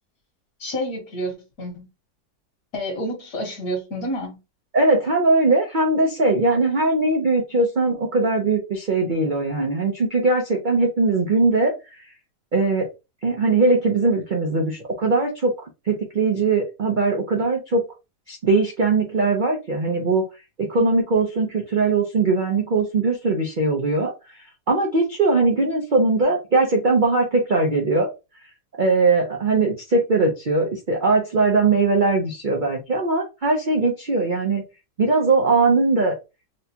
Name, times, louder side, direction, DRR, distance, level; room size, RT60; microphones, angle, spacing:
voice 1, 0.6-1.9 2.7-4.4, equal, 60° left, 1.6 m, -29 dB
voice 2, 4.7-11.7 12.5-12.9 13.2-15.5 15.9-17.9 18.3-20.2 20.6-24.1 24.7-28.1 28.8-34.6 35.0-36.2, right 3 dB, 80° right, 0.4 m, -20 dB
4.3 x 2.2 x 2.8 m
omnidirectional pair, 1.8 m